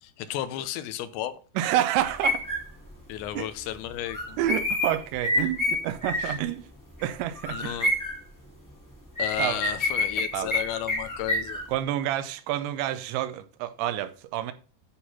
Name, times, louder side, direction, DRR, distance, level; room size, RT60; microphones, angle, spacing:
voice 1, 0.0-1.4 3.1-4.5 6.2-6.3 7.5-7.9 9.2-11.6, left 12 dB, 80° left, 2.9 m, -33 dB
voice 2, 1.6-2.5 3.3-3.5 4.4-6.7 7.0-7.8 9.4-9.6 10.3-10.5 11.7-14.5, right 12 dB, 85° right, 3.0 m, -28 dB
sound 1, 1.9-2.7 4.1-6.4 7.0-7.1 7.3-8.2 9.2-11.7, left 2 dB, 10° left, 1.2 m, -28 dB
10.0 x 4.2 x 5.6 m
omnidirectional pair, 5.2 m